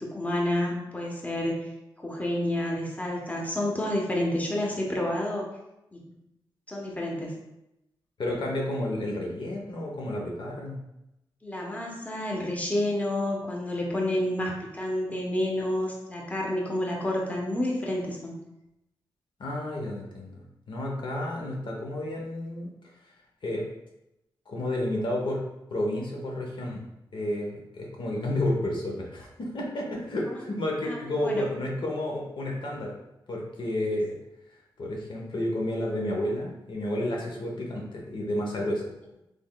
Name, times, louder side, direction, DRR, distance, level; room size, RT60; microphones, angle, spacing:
voice 1, 0.0-1.7 2.0-5.5 5.9-6.1 6.7-7.3 11.4-18.4 30.3-30.4 30.8-31.5, left 1 dB, 15° left, -1 dB, 0.8 m, -29 dB
voice 2, 8.2-10.8 19.4-20.4 20.7-22.7 23.4-23.6 24.5-25.4 25.7-26.8 27.1-32.9 33.3-34.2 34.8-38.9, left 1 dB, 65° left, -1 dB, 0.7 m, -31 dB
3.5 x 3.2 x 2.2 m, 0.88 s
cardioid pair, 55°, 9 cm